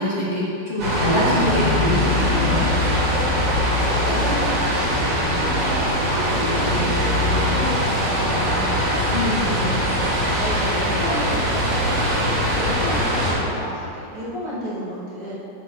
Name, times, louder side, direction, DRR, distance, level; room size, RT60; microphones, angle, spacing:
voice 1, 0.0-2.6 9.1-9.5, equal, 35° left, -7 dB, 1.5 m, -23 dB
sound 1, 0.8-13.3, equal, 75° right, 2.8 m, -21 dB
voice 2, 3.1-10.0 10.3-15.3, equal, 25° right, -12 dB, 2.1 m, -31 dB
8.5 x 4.2 x 6.5 m, 2.6 s
omnidirectional pair, 2.0 m